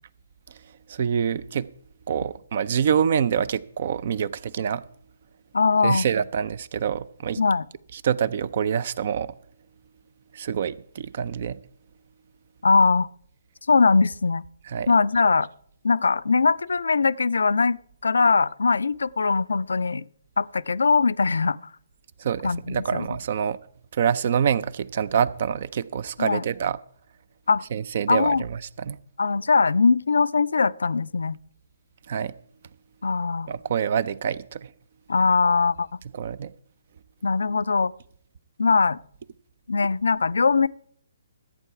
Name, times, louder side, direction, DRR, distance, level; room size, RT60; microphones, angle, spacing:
voice 1, 0.9-1.7 2.1-4.8 5.8-7.4 7.9-9.3 10.3-11.6 14.7-14.9 22.2-23.6 23.9-26.8 27.7-29.0 32.1-32.3 33.5-34.7 36.1-36.5, right 8 dB, 50° right, 0.5 m, -26 dB
voice 2, 5.5-6.1 7.4-7.6 12.6-13.1 13.7-14.4 14.9-15.5 15.8-17.8 18.0-20.0 20.4-21.7 22.4-23.1 26.2-26.4 27.5-27.6 28.1-28.4 29.2-31.4 33.0-33.5 35.1-35.9 37.2-37.9 38.6-39.0 39.7-40.7, left 4 dB, 75° left, 0.4 m, -21 dB
14.0 x 8.2 x 4.7 m
figure-of-eight pair, 135°, 0 cm